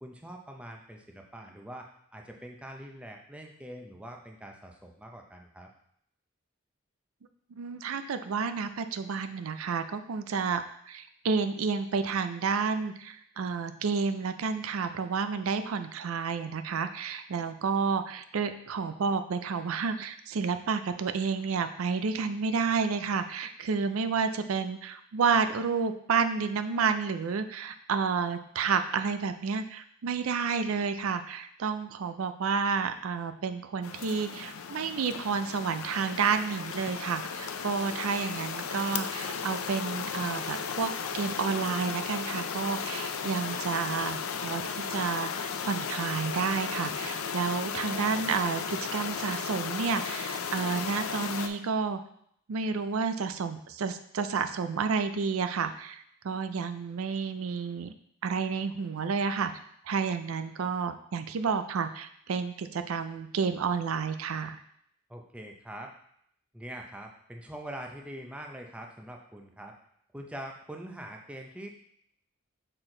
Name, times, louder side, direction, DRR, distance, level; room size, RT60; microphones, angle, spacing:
voice 1, 0.0-5.7 65.1-65.9 66.5-69.7 70.1-71.7, right 1 dB, 5° right, 2 dB, 0.5 m, -43 dB
voice 2, 7.6-52.0 52.5-57.9 58.2-59.5 59.9-64.6, right 5 dB, 85° right, 10 dB, 0.4 m, -30 dB
sound 1, 33.8-51.5, left 6 dB, 85° left, 0.5 m, -35 dB
6.1 x 4.4 x 3.8 m, 0.69 s
head